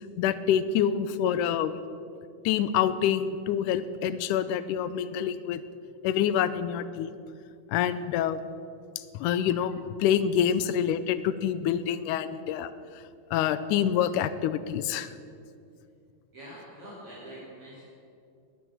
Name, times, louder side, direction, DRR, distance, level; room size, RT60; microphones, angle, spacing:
voice 1, 0.2-1.7 2.5-5.6 6.0-7.1 7.7-8.5 9.1-12.7 13.3-15.1, left 9 dB, 85° left, 13 dB, 2.2 m, -26 dB
voice 2, 16.3-17.9, right 1 dB, 45° right, -7 dB, 4.3 m, -45 dB
20.0 x 10.0 x 7.3 m, 2.4 s
omnidirectional pair, 3.6 m